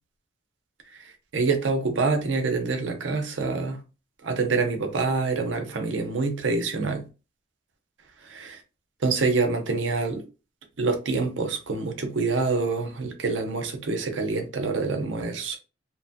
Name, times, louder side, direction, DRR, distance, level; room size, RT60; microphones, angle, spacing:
voice 1, 1.3-3.8 4.2-7.0 8.3-8.6 9.0-10.2 10.8-15.6, right 4 dB, 90° right, 0.7 m, -26 dB
2.9 x 2.2 x 2.7 m
head